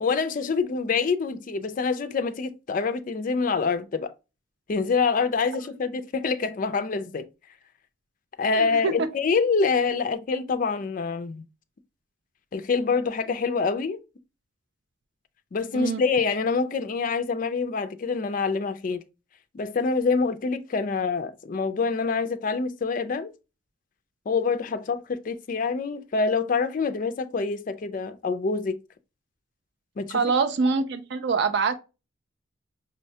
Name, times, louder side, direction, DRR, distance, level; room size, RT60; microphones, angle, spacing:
voice 1, 0.0-4.1 4.7-7.3 8.4-11.4 12.5-14.0 15.5-19.0 19.5-23.3 24.3-28.8 30.0-30.3, left 4 dB, 45° left, 0.4 m, -26 dB
voice 2, 8.5-8.9 15.7-16.0 30.1-31.7, right 4 dB, 60° right, 0.4 m, -24 dB
5.4 x 2.2 x 2.7 m
head